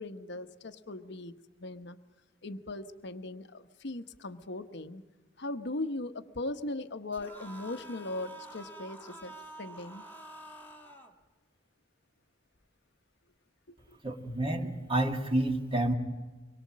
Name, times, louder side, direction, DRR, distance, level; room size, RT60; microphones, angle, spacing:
voice 1, 0.0-1.3 1.6-2.0 2.4-5.0 5.4-10.0, left 2 dB, 60° left, 9 dB, 1.1 m, -39 dB
sound 1, 7.1-11.1, right 2 dB, 10° left, 1.7 m, -48 dB
voice 2, 14.0-15.9, right 1 dB, 30° right, 4 dB, 2.0 m, -29 dB
25.0 x 22.0 x 7.5 m, 1.3 s
head